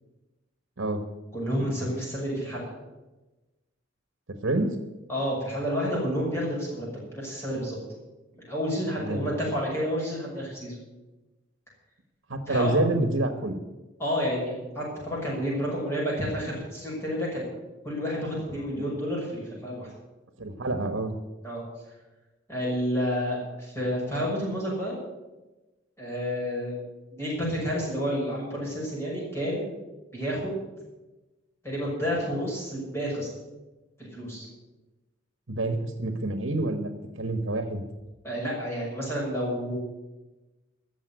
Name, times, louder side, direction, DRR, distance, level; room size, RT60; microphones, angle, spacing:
voice 1, 1.3-2.7 5.1-6.9 7.1-7.8 8.3-10.7 12.5-12.8 14.0-17.5 17.8-19.9 21.4-21.6 22.5-24.9 26.0-26.8 27.1-29.7 30.1-30.5 31.6-33.3 34.0-34.5 38.2-39.8, equal, 15° left, -5 dB, 6.2 m, -30 dB
voice 2, 9.0-9.3 12.3-13.6 18.7-18.9 20.4-21.1 35.5-36.9 37.2-37.8, right 2 dB, 80° right, 8 dB, 1.4 m, -27 dB
14.0 x 7.4 x 9.5 m, 1.1 s
head